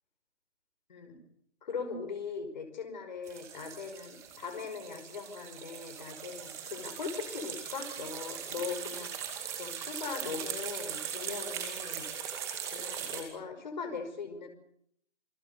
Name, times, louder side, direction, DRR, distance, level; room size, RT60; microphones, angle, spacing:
voice 1, 0.9-1.2 1.6-9.1 9.6-12.1 12.7-14.5, left 5 dB, 40° left, 7 dB, 5.6 m, -40 dB
sound 1, 3.3-13.2, right 8 dB, 10° right, 2.2 m, -40 dB
28.5 x 21.0 x 6.9 m, 0.70 s
figure-of-eight pair, 165°, 36 cm